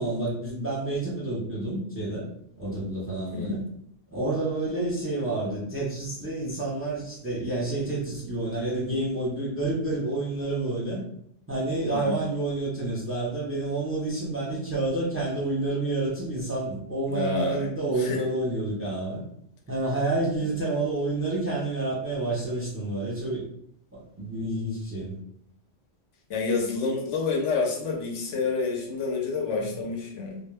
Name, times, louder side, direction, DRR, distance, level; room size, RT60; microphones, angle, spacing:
voice 1, 0.0-2.3 2.6-3.6 4.1-11.0 11.5-19.2 19.7-23.4 23.9-25.2, right 2 dB, 15° right, -7 dB, 0.7 m, -29 dB
voice 2, 17.1-17.7 18.0-18.2 26.3-30.4, left 4 dB, 75° left, 0 dB, 0.9 m, -28 dB
2.3 x 2.0 x 3.2 m, 0.70 s
omnidirectional pair, 1.3 m